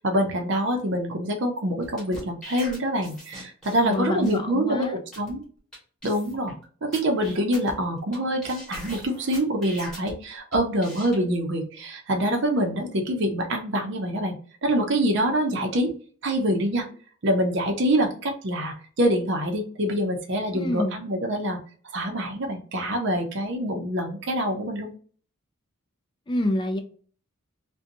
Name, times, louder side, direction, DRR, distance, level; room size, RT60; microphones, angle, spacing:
voice 1, 0.0-5.4 6.0-6.5 6.8-15.9 16.2-16.9 17.2-21.6 21.9-24.9, equal, 50° right, 2 dB, 0.6 m, -25 dB
sound 1, 1.8-3.9 4.2-4.4 4.8-4.9 5.1-5.3 5.7-5.8 6.0-6.5 6.9-8.2 8.4-10.1 10.5-11.2, equal, ahead, 1.1 m, -41 dB
voice 2, 3.8-5.0 20.5-21.0 26.3-26.8, left 1 dB, 20° left, 5 dB, 0.3 m, -27 dB
2.5 x 2.2 x 2.6 m, 0.44 s
head